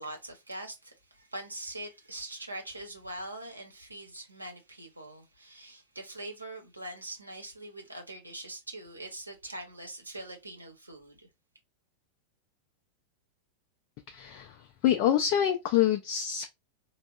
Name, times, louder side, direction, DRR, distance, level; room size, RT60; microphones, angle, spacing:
voice 1, 0.0-11.3, right 1 dB, 85° right, 0.7 m, -43 dB
voice 2, 14.1-14.5 14.8-16.5, left 10 dB, 45° left, 0.3 m, -26 dB
3.4 x 2.0 x 2.3 m
figure-of-eight pair, 90°, 0 cm